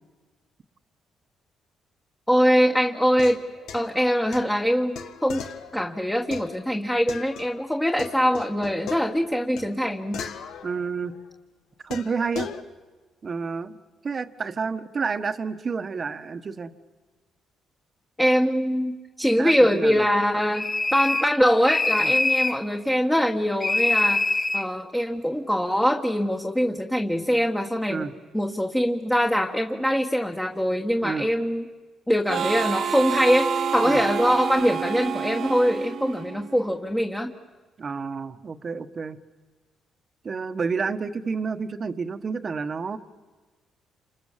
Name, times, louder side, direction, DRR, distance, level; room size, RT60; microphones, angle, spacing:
voice 1, 2.3-3.4 3.7-5.4 5.7-10.2 18.2-24.2 24.5-28.1 28.3-31.6 32.1-37.3, equal, 5° left, 2 dB, 1.6 m, -23 dB
sound 1, 3.1-7.7 8.0-11.3 11.9-12.6, left 7 dB, 80° left, 1.6 m, -39 dB
voice 2, 10.6-11.1 11.8-12.5 13.2-13.8 14.0-16.7 19.4-20.1 22.0-22.2 27.9-28.1 31.0-31.3 33.8-34.0 37.8-39.2 40.2-43.0, right 5 dB, 40° right, 10 dB, 1.3 m, -30 dB
sound 2, 20.5-21.4 21.7-22.6 23.6-24.7, left 2 dB, 25° left, 0.8 m, -23 dB
Harmonica, 32.3-36.8, right 7 dB, 60° right, 1.3 m, -28 dB
28.5 x 27.0 x 7.5 m, 1.3 s
cardioid pair, 90°, 0 cm